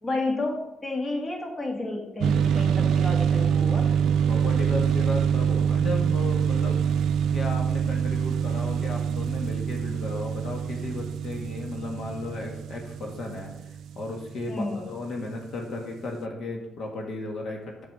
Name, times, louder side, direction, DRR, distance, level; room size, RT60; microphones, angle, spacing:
voice 1, 0.0-3.9 14.5-14.9, left 2 dB, 30° left, 1 dB, 1.9 m, -31 dB
sound 1, 2.2-14.7, right 8 dB, 75° right, 0.4 m, -25 dB
voice 2, 3.4-3.8 4.3-6.8 7.2-13.5 14.0-17.8, left 2 dB, 60° left, 1 dB, 1.7 m, -35 dB
7.7 x 6.2 x 4.9 m, 0.88 s
cardioid pair, 90°, 0 cm